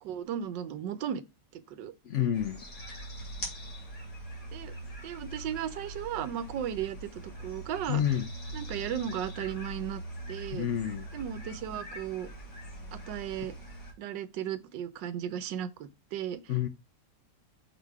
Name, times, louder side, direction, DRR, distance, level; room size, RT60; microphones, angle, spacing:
voice 1, 0.0-1.2 1.5-1.9 4.5-4.7 5.0-8.0 8.5-10.0 10.3-10.7 11.1-12.3 12.9-13.5 14.0-16.4, right 9 dB, 80° right, 1.4 m, -35 dB
voice 2, 2.0-2.6 7.9-8.3 10.5-11.1 16.5-16.7, left 10 dB, 70° left, 0.7 m, -29 dB
sound 1, 2.3-13.9, right 1 dB, 50° left, 3.3 m, -42 dB
6.4 x 4.0 x 4.7 m
omnidirectional pair, 1.9 m